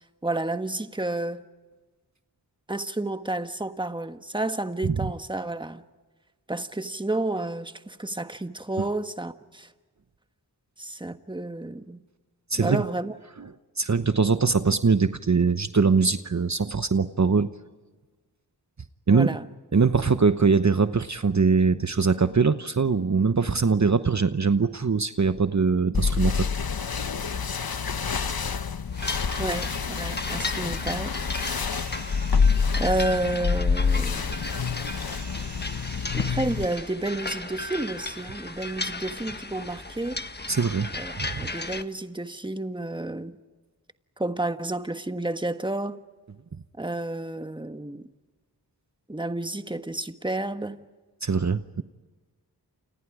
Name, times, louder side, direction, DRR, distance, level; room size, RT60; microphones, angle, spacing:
voice 1, 0.2-1.4 2.7-5.8 6.5-9.7 10.8-12.0 12.6-13.1 19.1-19.5 29.4-31.2 32.8-34.4 36.1-40.2 40.9-41.1 41.4-43.4 44.2-46.0 46.8-48.1 49.1-50.8, right 2 dB, 10° right, 1.4 m, -30 dB
voice 2, 12.5-12.8 13.4-13.5 13.8-17.5 19.1-19.3 19.7-26.5 40.5-40.9 41.2-41.3 51.2-51.8, right 5 dB, 45° right, 1.0 m, -22 dB
sound 1, 25.9-36.6, left 5 dB, 60° left, 1.1 m, -27 dB
sound 2, 28.9-41.8, left 2 dB, 25° left, 1.4 m, -36 dB
sound 3, 31.2-32.6 35.0-36.9 38.7-38.8, right 4 dB, 80° right, 2.6 m, -47 dB
29.5 x 29.0 x 5.0 m
wide cardioid pair, 50°, 40 cm